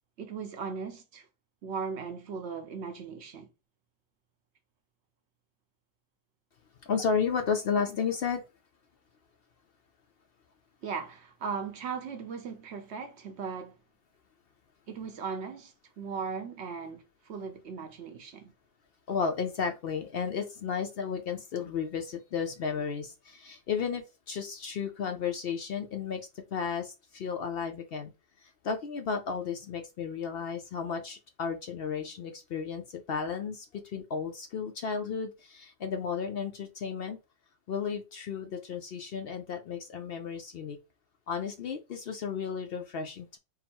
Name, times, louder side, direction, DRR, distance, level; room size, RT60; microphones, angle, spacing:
voice 1, 0.2-1.3 1.6-3.5 10.8-13.8 14.9-18.5, right 5 dB, 60° right, 0.9 m, -38 dB
voice 2, 6.8-8.4 19.1-26.2 26.5-28.1 28.4-37.2 37.7-40.8 41.3-43.4, left 6 dB, 60° left, 0.7 m, -33 dB
3.8 x 2.0 x 4.3 m
omnidirectional pair, 1.3 m